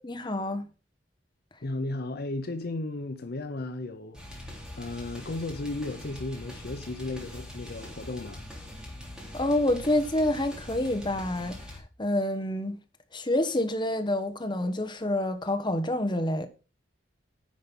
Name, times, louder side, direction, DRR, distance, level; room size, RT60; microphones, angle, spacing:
voice 1, 0.0-0.7 9.3-11.6 12.0-12.8 13.1-16.5, left 1 dB, 25° left, 1.2 m, -27 dB
voice 2, 1.6-4.5 4.8-8.4, left 2 dB, 55° left, 0.8 m, -35 dB
sound 1, 4.1-11.8, left 1 dB, 5° right, 3.2 m, -43 dB
10.5 x 5.3 x 5.4 m
head